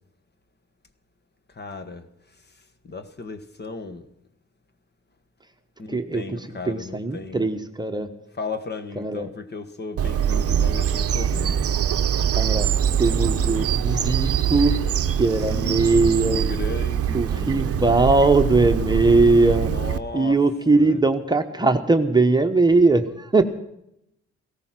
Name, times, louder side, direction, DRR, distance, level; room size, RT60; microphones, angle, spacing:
voice 1, 1.5-2.1 2.8-4.1 5.8-7.5 8.4-11.6 15.4-17.9 19.6-20.4 20.7-21.0, left 3 dB, 35° left, 1.5 m, -35 dB
voice 2, 5.9-8.1 9.0-9.3 12.3-12.7 13.0-14.8 15.1-16.4 17.1-19.7 20.1-23.4, right 3 dB, 15° right, 1.2 m, -20 dB
Bird vocalization bird call bird song, 10.0-20.0, right 8 dB, 50° right, 0.8 m, -23 dB
17.0 x 14.0 x 6.0 m
cardioid pair, 90°, 30 cm